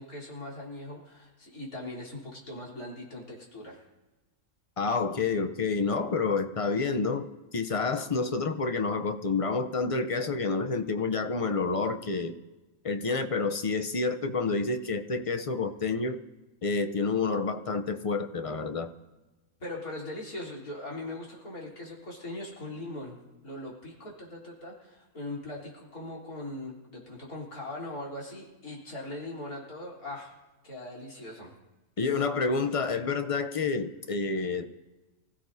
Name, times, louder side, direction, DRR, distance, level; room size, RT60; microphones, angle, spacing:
voice 1, 0.0-3.8 19.6-23.2 23.4-30.3 30.6-31.5, left 1 dB, 75° left, -2 dB, 4.1 m, -40 dB
voice 2, 4.8-12.3 12.8-16.2 16.6-18.9 32.0-34.7, left 4 dB, 45° left, 7 dB, 0.4 m, -29 dB
25.0 x 15.5 x 2.7 m, 1.1 s
omnidirectional pair, 1.5 m